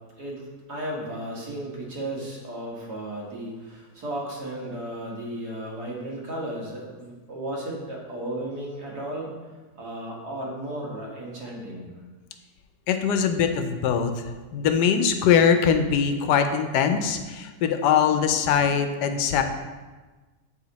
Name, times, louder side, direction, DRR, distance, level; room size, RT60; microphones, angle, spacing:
voice 1, 0.2-9.3 9.8-12.0, right 1 dB, 70° right, -3 dB, 2.1 m, -34 dB
voice 2, 12.9-14.2 14.5-19.4, left 7 dB, 90° left, 7 dB, 1.2 m, -22 dB
7.4 x 4.9 x 4.0 m, 1.3 s
omnidirectional pair, 1.8 m